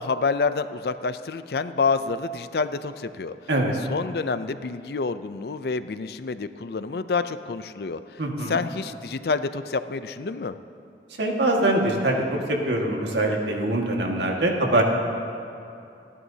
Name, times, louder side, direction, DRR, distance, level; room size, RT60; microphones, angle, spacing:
voice 1, 0.0-3.4 3.9-8.2 8.5-10.6, left 4 dB, 60° left, 12 dB, 0.5 m, -28 dB
voice 2, 8.2-8.6 11.2-14.8, right 1 dB, 80° right, 0 dB, 1.8 m, -23 dB
29.5 x 11.0 x 2.8 m, 2.6 s
head